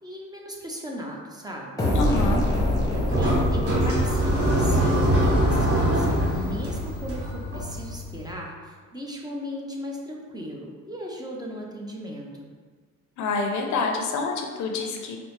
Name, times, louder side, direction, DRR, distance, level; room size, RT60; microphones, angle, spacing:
voice 1, 0.0-1.9 2.9-12.5, equal, 15° right, -2 dB, 0.6 m, -37 dB
sound 1, 1.8-5.4, left 1 dB, 10° left, 0.9 m, -25 dB
voice 2, 2.0-2.4 13.2-15.2, left 3 dB, 70° left, 2 dB, 0.5 m, -27 dB
sound 2, 2.4-8.3, right 1 dB, 50° right, 1.3 m, -24 dB
4.4 x 2.1 x 3.1 m, 1.5 s
cardioid pair, 90°, 30 cm